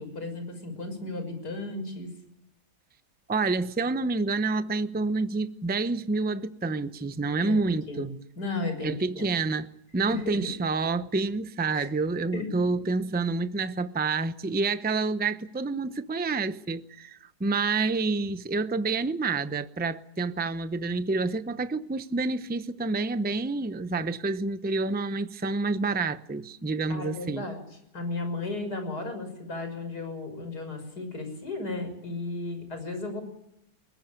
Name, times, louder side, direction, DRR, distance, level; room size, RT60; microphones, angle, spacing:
voice 1, 0.0-2.1 7.4-7.6 7.9-9.3 10.1-10.5 11.7-11.9 12.3-12.5 26.9-27.6 27.9-33.2, left 2 dB, 80° left, 6.9 m, -34 dB
voice 2, 3.3-8.1 8.8-9.7 9.9-27.5, right 3 dB, 10° right, 0.6 m, -28 dB
21.5 x 18.5 x 9.0 m
omnidirectional pair, 1.7 m